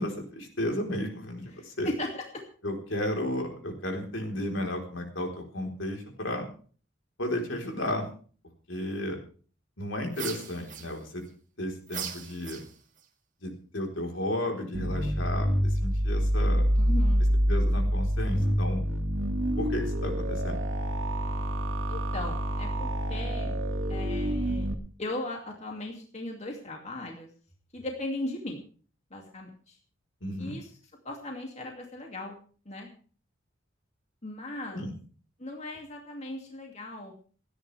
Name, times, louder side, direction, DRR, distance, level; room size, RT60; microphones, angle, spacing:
voice 1, 0.0-1.9 2.6-6.5 7.2-8.1 8.7-9.2 9.8-11.2 11.6-12.6 13.4-16.6 17.5-18.8 19.6-20.6 30.2-30.6 34.7-34.9, left 1 dB, 70° left, 2 dB, 4.1 m, -33 dB
voice 2, 1.5-2.4 16.8-17.3 21.9-23.6 23.9-24.7 25.0-27.3 27.7-28.6 29.1-29.8 30.4-30.7 31.0-32.4 32.7-32.9 34.2-34.8 35.4-37.1, left 1 dB, 35° left, 1 dB, 2.5 m, -37 dB
sound 1, 10.1-11.3 11.9-13.0, right 8 dB, 40° right, 1.9 m, -39 dB
sound 2, 14.7-24.7, equal, 85° right, 2.2 m, -27 dB
29.5 x 10.0 x 3.5 m, 0.42 s
head